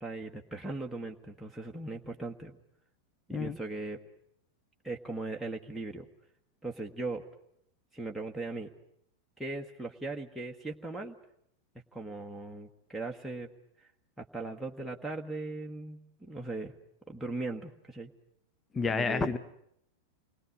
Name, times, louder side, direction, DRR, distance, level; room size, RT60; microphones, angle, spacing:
voice 1, 0.0-2.6 3.3-4.0 4.8-6.1 6.6-7.2 7.9-8.7 9.4-11.1 11.9-13.5 13.8-13.9 14.2-16.7 17.1-18.1 18.9-19.3, right 2 dB, ahead, -1 dB, 1.5 m, -38 dB
voice 2, 18.7-19.4, left 4 dB, 15° left, 13 dB, 1.1 m, -29 dB
28.5 x 21.0 x 9.7 m, 0.75 s
figure-of-eight pair, 90°, 0 cm